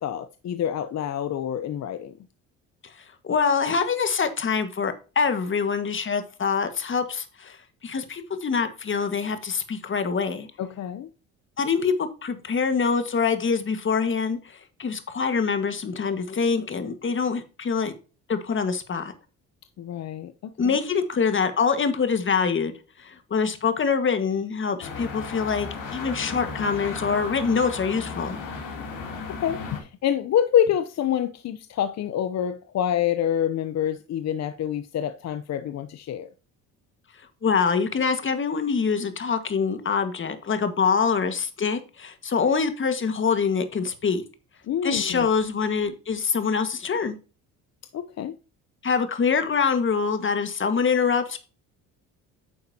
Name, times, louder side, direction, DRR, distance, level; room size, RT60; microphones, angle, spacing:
voice 1, 0.0-2.1 10.6-11.1 19.8-20.8 29.3-36.3 44.7-45.3 47.9-48.4, left 10 dB, 50° left, 0.8 m, -27 dB
voice 2, 3.2-7.6 7.8-10.5 11.6-17.9 18.3-19.1 20.6-22.7 23.0-28.4 37.4-44.2 44.8-47.2 48.8-51.4, left 5 dB, 35° left, 1.7 m, -25 dB
sound 1, 24.8-29.8, left 4 dB, 70° left, 3.1 m, -35 dB
9.9 x 6.6 x 2.8 m
supercardioid pair, 75°, 34 cm